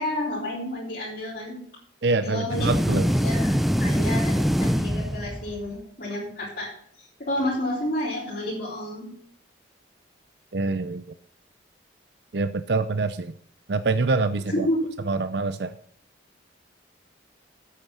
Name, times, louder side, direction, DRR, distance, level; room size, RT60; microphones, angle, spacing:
voice 1, 0.0-1.6 2.2-2.7 3.1-6.7 7.0-9.1 14.5-14.8, left 1 dB, 45° left, -9 dB, 4.7 m, -30 dB
voice 2, 2.0-3.1 10.5-11.0 12.3-13.3 13.7-14.7 15.1-15.8, right 3 dB, 60° right, 11 dB, 0.6 m, -25 dB
sound 1, 2.5-5.7, equal, ahead, 0.4 m, -23 dB
9.4 x 8.5 x 7.4 m, 0.63 s
head